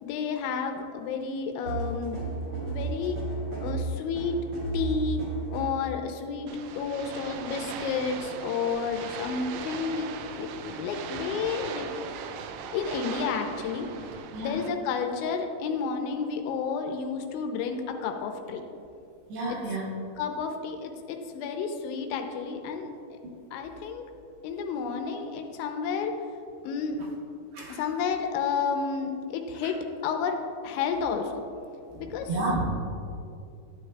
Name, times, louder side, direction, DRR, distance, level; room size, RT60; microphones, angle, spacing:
voice 1, 0.0-2.2 2.6-3.2 3.6-4.4 4.7-5.2 5.5-11.9 12.3-12.4 12.7-13.9 14.4-18.6 19.5-19.6 20.2-22.9 23.5-24.0 24.4-26.2 26.6-27.0 27.7-31.4 32.0-32.3, left 5 dB, 90° left, 4 dB, 3.0 m, -31 dB
sound 1, 1.6-5.9, right 3 dB, 50° right, 1.7 m, -33 dB
sound 2, 6.5-14.7, right 7 dB, 85° right, 2.9 m, -39 dB
voice 2, 19.3-19.8 27.5-27.8 31.9-32.6, right 2 dB, 70° right, -3 dB, 2.7 m, -31 dB
13.5 x 9.1 x 2.3 m, 2.6 s
omnidirectional pair, 5.4 m